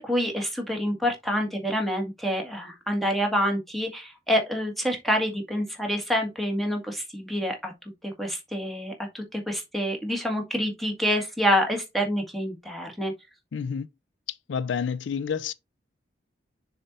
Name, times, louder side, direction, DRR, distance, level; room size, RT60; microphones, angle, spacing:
voice 1, 0.0-7.7 8.0-13.1, equal, ahead, 1.7 m, -27 dB
voice 2, 13.5-13.9 14.5-15.5, left 6 dB, 80° left, 0.4 m, -29 dB
6.6 x 4.3 x 4.1 m
head